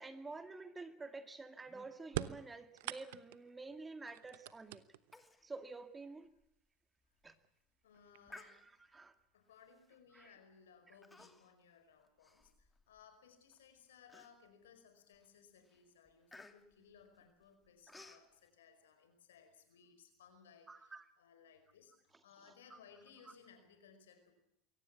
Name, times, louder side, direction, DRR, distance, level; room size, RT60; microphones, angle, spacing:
voice 1, 0.0-4.8 5.4-6.3 7.2-7.3 8.4-9.1 10.1-10.3 17.9-18.0 20.7-21.0 22.7-22.8 23.3-23.4, right 3 dB, 20° right, 9 dB, 2.2 m, -49 dB
sound 1, 2.1-3.5 4.1-5.2 6.3-6.4 7.4-7.5 7.9-8.4, right 15 dB, 75° right, 0.9 m, -43 dB
Human voice, 5.1-5.4 5.8-5.9 6.4-6.5 7.0-7.3 8.3-9.0 9.8-10.0 11.0-11.6 12.0-13.0 13.5-13.6 14.1-14.7 15.1-15.4 15.6-18.3, left 2 dB, 10° left, 2.6 m, -58 dB
voice 2, 7.8-8.9 9.3-24.3, left 6 dB, 85° left, 8 dB, 5.0 m, -63 dB
23.0 x 17.5 x 8.5 m, 0.77 s
hypercardioid pair, 85°, 0 cm